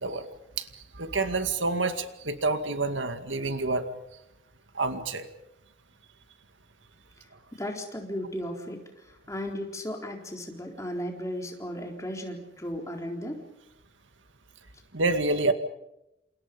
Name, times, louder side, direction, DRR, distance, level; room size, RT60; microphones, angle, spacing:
voice 1, 1.0-3.9 4.7-5.3 14.9-15.5, right 3 dB, 85° right, 8 dB, 2.2 m, -27 dB
voice 2, 7.5-13.4, equal, 15° left, 2 dB, 4.0 m, -35 dB
29.0 x 28.0 x 5.4 m, 0.88 s
head